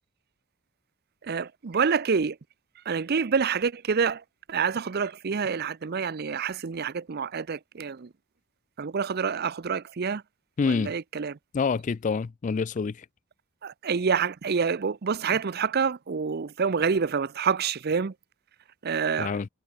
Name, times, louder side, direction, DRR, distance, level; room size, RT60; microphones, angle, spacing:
voice 1, 1.2-2.4 2.9-4.2 4.5-8.1 8.8-10.2 10.6-11.4 13.6-18.1 18.8-19.3, right 6 dB, 45° right, 0.5 m, -27 dB
voice 2, 10.6-10.9 11.5-13.0 19.2-19.5, left 5 dB, 35° left, 0.3 m, -27 dB
head